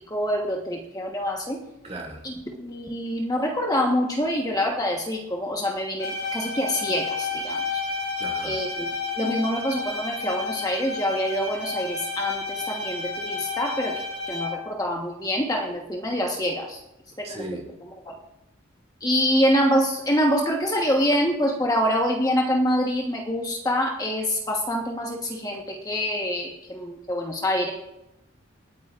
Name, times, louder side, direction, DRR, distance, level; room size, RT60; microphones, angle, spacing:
voice 1, 0.1-1.6 2.2-2.3 2.6-7.8 8.4-16.8 17.2-17.4 17.8-18.1 19.0-27.7, equal, 20° left, 1 dB, 1.2 m, -26 dB
voice 2, 1.8-2.2 8.2-8.6 17.2-17.6, right 1 dB, 30° right, 0 dB, 2.5 m, -36 dB
Bowed string instrument, 6.0-14.7, left 3 dB, 80° left, 4.6 m, -31 dB
28.0 x 9.3 x 2.5 m, 0.90 s
head